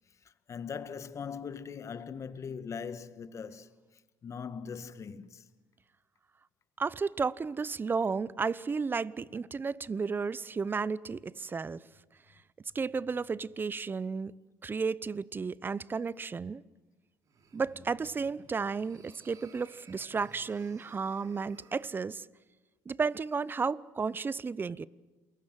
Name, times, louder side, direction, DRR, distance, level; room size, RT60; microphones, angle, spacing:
voice 1, 0.5-3.7 4.2-5.4, left 6 dB, 40° left, 1.7 m, -40 dB
voice 2, 6.8-11.8 12.7-14.3 14.6-16.6 17.5-22.3 22.9-24.9, right 5 dB, 25° right, 0.8 m, -33 dB
sound 1, 17.2-22.0, right 5 dB, 45° right, 3.5 m, -57 dB
28.5 x 22.5 x 7.6 m
supercardioid pair, 80°, 8 cm